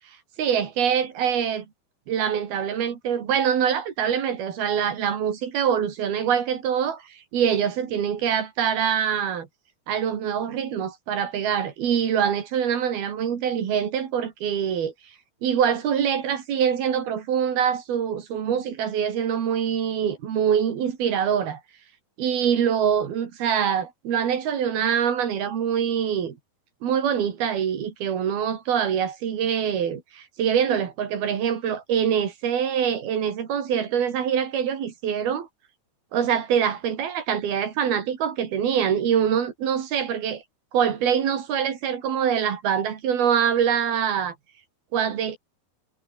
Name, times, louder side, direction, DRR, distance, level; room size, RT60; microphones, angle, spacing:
voice 1, 0.4-1.7 2.1-9.5 9.9-14.9 15.4-21.6 22.2-26.4 26.8-35.5 36.1-40.4 40.7-44.3 44.9-45.4, right 8 dB, 65° right, 4.3 m, -24 dB
omnidirectional pair, 4.8 m